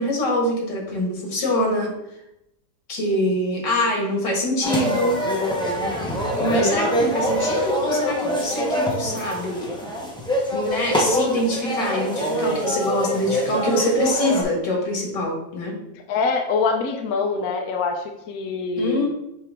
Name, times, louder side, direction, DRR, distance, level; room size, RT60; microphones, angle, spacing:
voice 1, 0.0-2.0 2.9-5.2 6.3-9.7 10.5-15.8 18.8-19.1, left 1 dB, 80° left, -1 dB, 2.2 m, -24 dB
sound 1, 4.6-14.4, equal, 5° left, 0.7 m, -24 dB
voice 2, 6.6-6.9 16.1-19.1, left 4 dB, 65° left, 3 dB, 1.1 m, -24 dB
8.4 x 3.3 x 3.6 m, 0.83 s
omnidirectional pair, 1.9 m